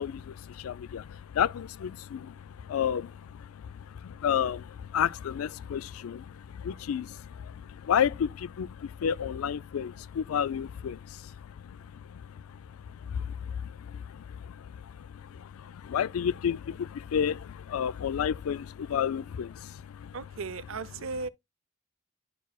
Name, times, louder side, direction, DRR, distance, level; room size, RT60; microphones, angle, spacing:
voice 1, 0.0-20.2, left 8 dB, 90° left, 0.4 m, -32 dB
voice 2, 20.1-21.3, right 4 dB, 70° right, 0.6 m, -36 dB
10.5 x 4.6 x 2.3 m
head